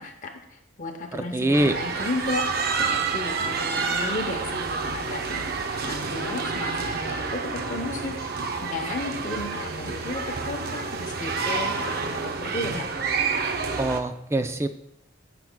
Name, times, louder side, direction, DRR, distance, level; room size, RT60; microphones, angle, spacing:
voice 1, 0.0-7.4 7.7-8.2 8.6-12.9, left 2 dB, 40° left, 4 dB, 0.8 m, -34 dB
voice 2, 1.1-1.8 13.8-14.7, right 1 dB, 15° right, 9 dB, 0.4 m, -24 dB
sound 1, 1.5-14.0, right 4 dB, 50° right, 0.6 m, -29 dB
15.0 x 5.9 x 2.2 m, 0.78 s
head